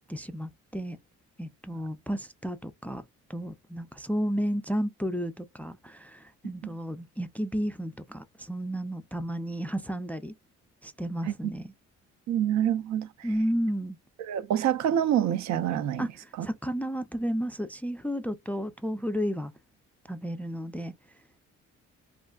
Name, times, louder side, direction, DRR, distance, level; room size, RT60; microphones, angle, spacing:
voice 1, 0.1-1.0 1.4-3.0 3.3-10.3 10.8-11.7 13.2-14.0 16.0-16.1 16.4-19.5 20.1-20.9, equal, 5° left, 0.3 m, -32 dB
voice 2, 12.3-13.3 14.2-16.1 16.4-16.5, right 10 dB, 65° right, 0.5 m, -26 dB
3.4 x 2.4 x 2.2 m
cardioid pair, 90°, 30 cm